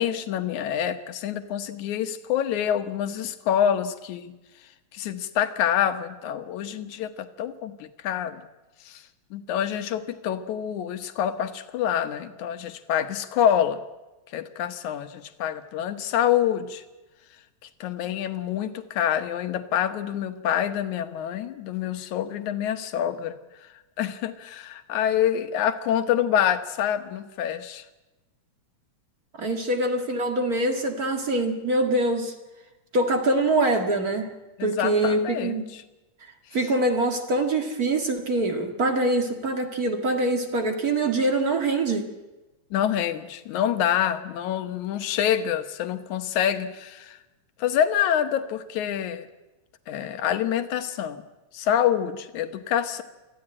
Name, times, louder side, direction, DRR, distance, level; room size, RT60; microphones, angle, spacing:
voice 1, 0.0-4.3 4.9-8.4 8.9-9.0 9.3-13.8 14.3-16.8 17.8-23.4 24.0-27.8 34.6-35.6 42.7-47.2 47.6-49.3 49.9-51.2 51.5-53.0, left 10 dB, 80° left, 9 dB, 2.6 m, -26 dB
voice 2, 29.4-32.3 32.9-34.3 34.6-35.6 36.5-42.1, right 2 dB, 35° right, 5 dB, 1.8 m, -24 dB
24.5 x 15.0 x 8.7 m, 1.1 s
omnidirectional pair, 3.4 m